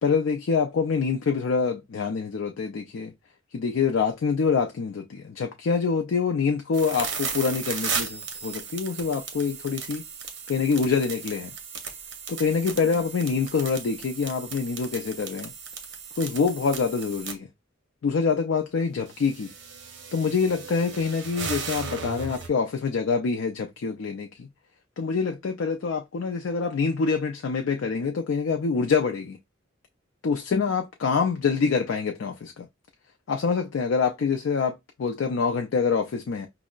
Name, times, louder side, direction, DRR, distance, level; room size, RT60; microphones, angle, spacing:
voice 1, 0.0-3.1 3.5-10.0 10.5-11.5 12.3-15.5 16.2-17.5 18.0-19.5 20.1-24.5 25.0-29.4 30.2-32.7 33.3-36.5, left 5 dB, 70° left, 0.4 m, -26 dB
sound 1, 6.7-17.3 18.8-22.5, right 6 dB, 60° right, 0.7 m, -36 dB
5.2 x 2.0 x 2.3 m
head